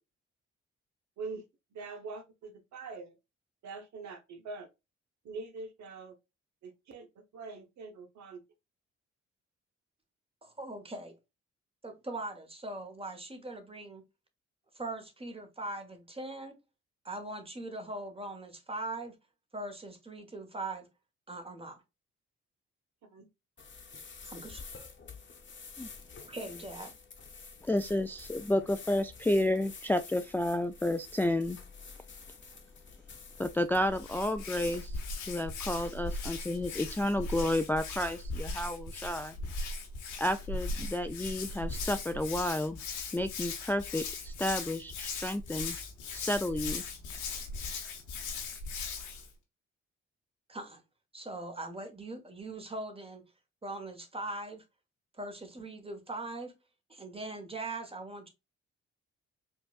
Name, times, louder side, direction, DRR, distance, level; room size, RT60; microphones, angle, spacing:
voice 1, 1.7-3.2 3.6-4.7 5.2-6.2 6.6-7.1 7.3-8.4 23.0-23.3, right 4 dB, 70° right, 0.8 m, -43 dB
voice 2, 10.4-11.2 11.8-14.0 14.7-16.5 17.0-19.1 19.5-20.8 21.3-21.8 24.2-24.6 26.2-26.9 50.5-50.8 51.1-53.2 53.6-54.6 55.2-56.5 56.9-58.3, right 2 dB, 20° right, 1.3 m, -41 dB
sound 1, 23.6-34.8, left 5 dB, 40° left, 1.0 m, -49 dB
voice 3, 27.6-31.6 33.4-35.0 35.3-39.4 40.2-42.8 43.1-45.8 46.1-46.8, left 1 dB, 5° left, 0.3 m, -31 dB
Hands, 33.9-49.3, left 3 dB, 85° left, 1.0 m, -38 dB
4.5 x 2.4 x 2.4 m
supercardioid pair, 55°, 29 cm